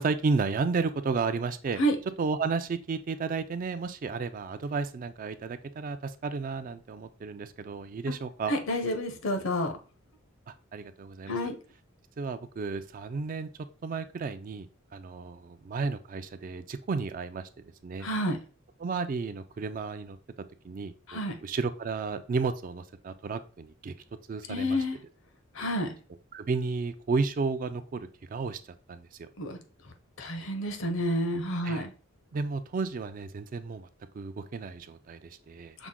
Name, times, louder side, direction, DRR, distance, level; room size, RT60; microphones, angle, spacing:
voice 1, 0.0-1.8 2.2-8.5 10.5-11.4 12.2-13.5 13.8-17.5 17.8-18.1 18.8-20.2 20.6-23.9 24.3-24.8 26.3-28.6 28.9-29.3 31.6-31.9 32.3-33.9 34.1-35.8, right 4 dB, 45° right, 0.3 m, -32 dB
voice 2, 8.5-9.7 11.3-11.5 18.0-18.4 21.1-21.3 24.5-25.0 25.5-25.9 29.4-29.6 30.2-31.9 35.8-35.9, equal, 70° left, 0.8 m, -29 dB
5.9 x 2.1 x 3.6 m
head